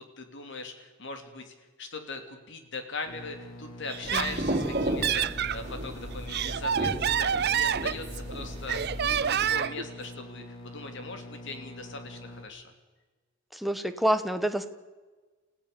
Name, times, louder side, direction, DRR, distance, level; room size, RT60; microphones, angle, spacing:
voice 1, 0.0-12.7, left 3 dB, 65° left, 6 dB, 3.1 m, -40 dB
sound 1, 3.0-12.4, left 1 dB, 85° left, 4.3 m, -45 dB
Laughter, 3.9-5.6 6.1-8.3 8.7-9.8, right 9 dB, 55° right, 0.6 m, -28 dB
sound 2, 4.0-9.5, right 1 dB, 35° right, 4.0 m, -34 dB
voice 2, 4.1-4.5 13.5-14.7, right 1 dB, ahead, 8 dB, 1.2 m, -28 dB
29.5 x 15.5 x 7.0 m, 1.3 s
head